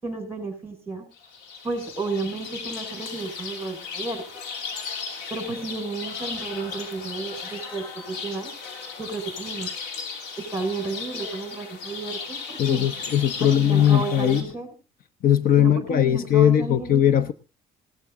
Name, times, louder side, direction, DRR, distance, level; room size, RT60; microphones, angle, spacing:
voice 1, 0.0-1.1 1.6-4.2 5.3-8.5 9.0-9.7 10.4-12.9 13.4-14.7 15.6-16.9, right 3 dB, 15° right, 7 dB, 5.4 m, -32 dB
sound 1, 1.1-14.4, left 5 dB, 90° left, 3.1 m, -36 dB
voice 2, 12.6-14.5 15.2-17.3, left 10 dB, 55° left, 14 dB, 0.9 m, -19 dB
17.0 x 13.0 x 3.7 m, 0.30 s
cardioid pair, 110°, 17 cm